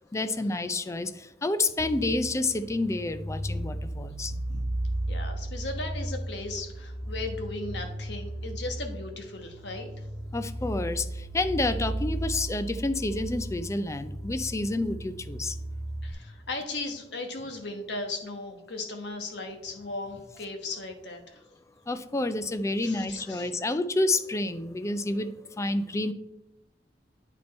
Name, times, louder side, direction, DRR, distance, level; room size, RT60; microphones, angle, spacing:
voice 1, 0.1-4.3 10.3-15.5 21.9-26.1, left 2 dB, 15° left, 11 dB, 0.4 m, -29 dB
sound 1, 1.8-16.1, right 1 dB, 50° right, 1.1 m, -35 dB
voice 2, 4.5-9.9 16.0-21.4 22.8-23.5, left 2 dB, 80° left, 5 dB, 1.2 m, -37 dB
9.0 x 4.3 x 4.3 m, 0.91 s
head